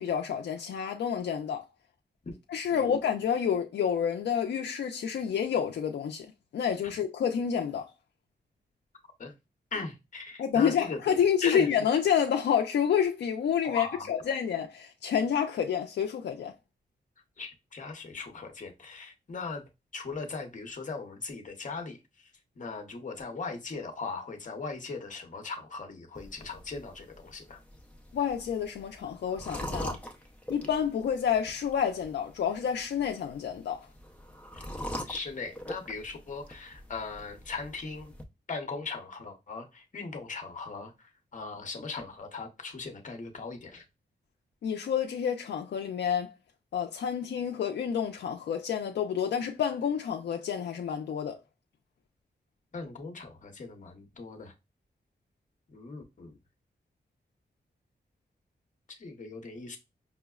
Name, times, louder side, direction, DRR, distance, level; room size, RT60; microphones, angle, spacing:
voice 1, 0.0-1.6 2.5-6.3 6.5-7.9 10.4-16.5 28.1-30.0 30.5-33.9 44.6-46.3 46.7-51.4, left 8 dB, 80° left, 0.4 m, -29 dB
voice 2, 9.7-11.0 11.4-11.7 13.6-14.1 17.4-19.6 19.9-27.6 35.0-38.1 38.5-43.8 52.7-54.5 55.7-56.3 58.9-59.8, left 4 dB, 45° left, 0.8 m, -39 dB
sound 1, 26.2-38.2, equal, 5° left, 0.6 m, -43 dB
5.4 x 2.0 x 2.3 m
wide cardioid pair, 105°, 18 cm